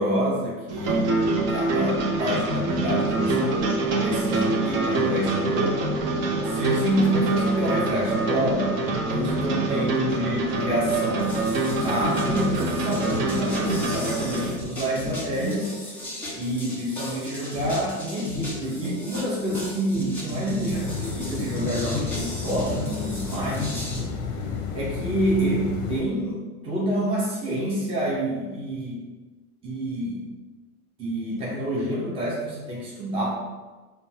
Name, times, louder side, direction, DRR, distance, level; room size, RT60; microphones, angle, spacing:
voice 1, 0.0-3.6 4.0-5.9 6.4-8.7 9.1-11.4 11.7-15.7 16.3-24.2 24.7-29.0 29.6-30.3 31.0-33.3, right 1 dB, 10° right, -5 dB, 0.6 m, -27 dB
sound 1, 0.7-14.6, right 2 dB, 50° right, 0.8 m, -25 dB
sound 2, 11.2-24.0, left 1 dB, 5° left, 1.2 m, -33 dB
sound 3, 20.7-26.0, left 6 dB, 35° left, 0.6 m, -32 dB
5.2 x 2.3 x 2.8 m, 1.3 s
figure-of-eight pair, 85°, 45 cm